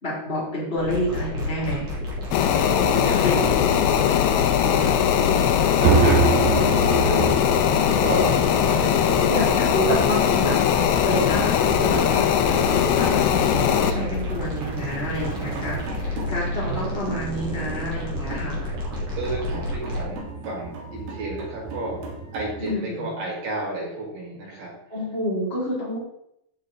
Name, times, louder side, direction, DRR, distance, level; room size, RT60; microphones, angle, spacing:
voice 1, 0.0-1.9 3.2-3.9 9.3-10.8 11.0-18.6 22.6-23.2 24.9-26.0, equal, 15° left, -8 dB, 4.8 m, -28 dB
sound 1, 0.8-20.2, left 1 dB, 45° right, 3.6 m, -31 dB
sound 2, 2.3-13.9, left 9 dB, 85° left, 2.7 m, -20 dB
voice 2, 2.7-3.6 4.3-7.5 8.0-8.3 8.6-9.6 16.6-17.1 19.2-22.1 22.3-24.7, right 2 dB, 85° right, -5 dB, 6.8 m, -32 dB
sound 3, 5.8-22.7, right 6 dB, 65° right, 3.4 m, -30 dB
14.5 x 6.7 x 3.9 m, 0.78 s
omnidirectional pair, 4.6 m